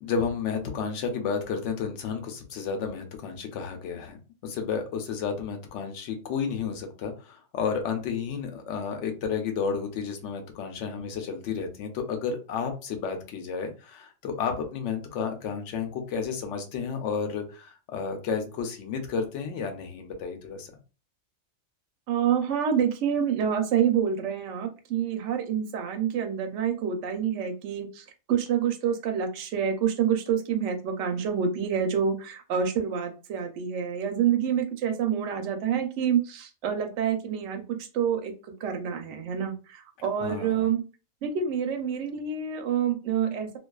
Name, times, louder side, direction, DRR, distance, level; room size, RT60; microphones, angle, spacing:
voice 1, 0.0-20.7 40.2-40.6, left 6 dB, 70° left, 5 dB, 0.9 m, -32 dB
voice 2, 22.1-38.3 38.6-40.8 41.2-43.6, right 8 dB, 70° right, 4 dB, 0.8 m, -27 dB
2.4 x 2.3 x 2.3 m, 0.33 s
omnidirectional pair, 1.4 m